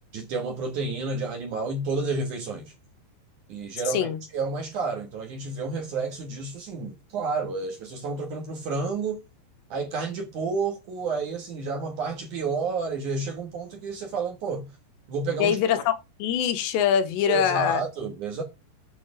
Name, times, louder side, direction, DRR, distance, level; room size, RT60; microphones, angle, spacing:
voice 1, 0.1-2.7 3.5-4.1 4.3-9.2 9.7-14.7 15.1-15.6 17.3-18.4, right 4 dB, 60° right, 2.2 m, -30 dB
voice 2, 3.9-4.2 15.4-15.9 16.2-17.8, left 9 dB, 75° left, 3.1 m, -23 dB
8.8 x 5.8 x 6.9 m
omnidirectional pair, 5.3 m